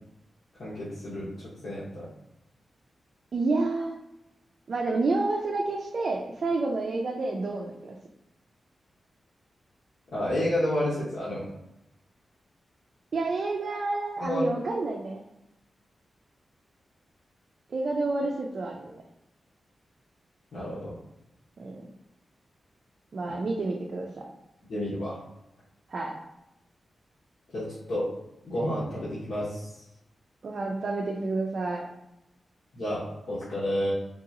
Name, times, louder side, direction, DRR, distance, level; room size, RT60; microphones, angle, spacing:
voice 1, 0.6-2.1 10.1-11.5 14.2-14.5 20.5-20.9 24.7-25.2 27.5-28.0 28.4-29.7 32.7-33.9, left 1 dB, 75° left, -10 dB, 1.2 m, -30 dB
voice 2, 3.3-4.0 4.7-8.0 13.1-15.2 17.7-19.0 21.6-21.8 23.1-24.3 25.9-26.1 30.4-31.9, right 3 dB, 60° right, -1 dB, 0.4 m, -29 dB
3.8 x 2.4 x 2.9 m, 0.88 s
wide cardioid pair, 105°, 0 cm